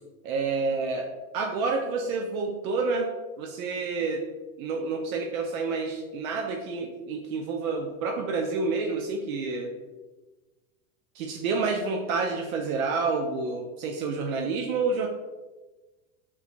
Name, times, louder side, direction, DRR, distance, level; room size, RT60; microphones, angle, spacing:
voice 1, 0.2-4.2 4.6-9.7 11.1-15.1, right 4 dB, 90° right, 1 dB, 0.6 m, -29 dB
3.6 x 2.5 x 2.8 m, 1.2 s
supercardioid pair, 140°, 41 cm